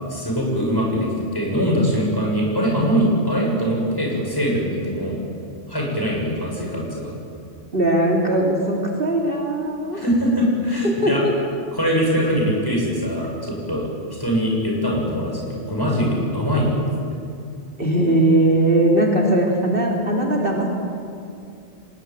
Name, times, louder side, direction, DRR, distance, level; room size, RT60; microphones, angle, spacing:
voice 1, 0.1-5.2 5.7-7.1 9.9-11.2 11.7-13.9 14.2-16.8, equal, 15° left, -2 dB, 7.0 m, -22 dB
voice 2, 7.7-10.0 10.8-11.3 17.8-20.7, right 1 dB, 45° right, -1 dB, 3.4 m, -19 dB
25.0 x 20.5 x 9.0 m, 2.5 s
omnidirectional pair, 1.3 m